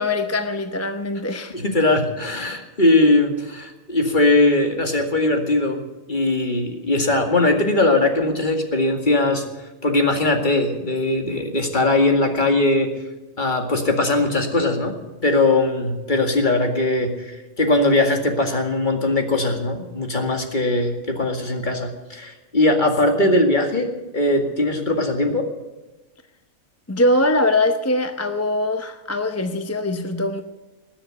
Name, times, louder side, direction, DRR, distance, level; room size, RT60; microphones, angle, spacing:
voice 1, 0.0-1.6 23.2-23.3 26.9-30.4, left 1 dB, 15° left, 0.6 m, -22 dB
voice 2, 1.5-5.8 6.1-12.9 13.4-14.9 15.2-25.5, left 2 dB, 35° left, 2.2 m, -20 dB
20.5 x 7.2 x 9.6 m
omnidirectional pair, 1.4 m